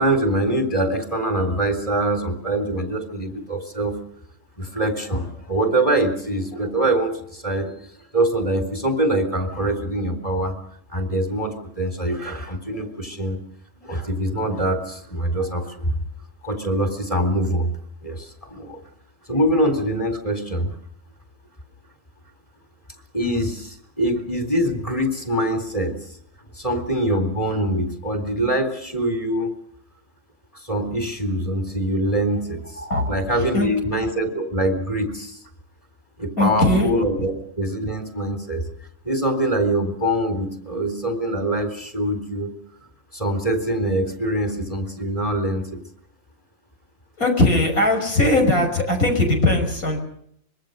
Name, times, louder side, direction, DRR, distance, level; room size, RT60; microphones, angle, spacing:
voice 1, 0.0-4.0 4.6-7.7 8.1-10.6 10.9-13.4 13.8-16.0 16.4-17.7 18.0-18.8 19.3-20.7 23.1-26.0 26.6-29.5 30.5-32.8 33.1-35.4 36.2-38.6 39.1-42.5 43.1-45.8, right 1 dB, 25° left, 7 dB, 3.9 m, -24 dB
voice 2, 32.7-33.7 36.4-36.9 47.2-50.0, left 1 dB, 85° left, 3 dB, 6.4 m, -20 dB
25.0 x 22.5 x 6.7 m, 0.68 s
omnidirectional pair, 1.4 m